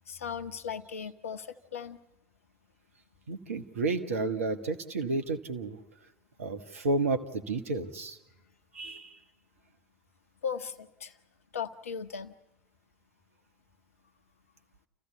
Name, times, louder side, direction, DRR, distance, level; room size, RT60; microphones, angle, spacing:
voice 1, 0.1-1.5 1.7-2.0 10.4-11.1 11.5-12.3, left 7 dB, 80° left, 11 dB, 1.0 m, -37 dB
voice 2, 3.3-5.8 6.4-8.2 8.7-9.2, right 3 dB, 80° right, 7 dB, 1.4 m, -31 dB
28.5 x 15.5 x 8.3 m, 0.98 s
figure-of-eight pair, 65°, 7 cm